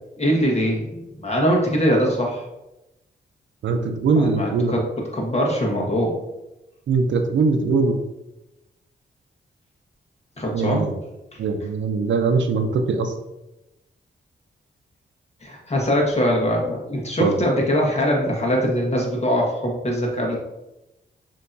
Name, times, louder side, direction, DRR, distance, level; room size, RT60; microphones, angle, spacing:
voice 1, 0.1-2.4 4.1-6.2 10.4-10.8 11.3-11.4 15.4-20.4, equal, 35° left, -1 dB, 1.5 m, -22 dB
voice 2, 3.6-4.7 6.9-8.0 10.5-10.9 11.4-13.1 17.2-17.3, right 4 dB, 80° right, 6 dB, 0.6 m, -21 dB
6.5 x 3.1 x 2.7 m, 0.94 s
cardioid pair, 70°, 19 cm